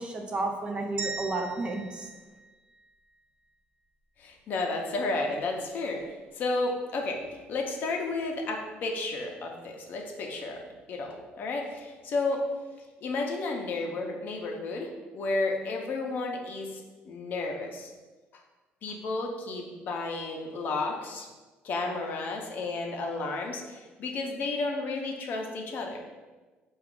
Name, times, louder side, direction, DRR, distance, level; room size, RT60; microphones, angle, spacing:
voice 1, 0.0-2.1, right 2 dB, 25° right, 3 dB, 0.4 m, -32 dB
sound 1, 1.0-3.2, right 4 dB, 60° right, 1.2 m, -40 dB
voice 2, 4.2-6.0 6.3-7.2 7.5-10.6 10.9-12.4 13.0-17.9 18.8-21.3 21.6-26.0, left 3 dB, 50° left, 2 dB, 0.5 m, -32 dB
4.7 x 2.3 x 3.6 m, 1.3 s
cardioid pair, 155°, 4 cm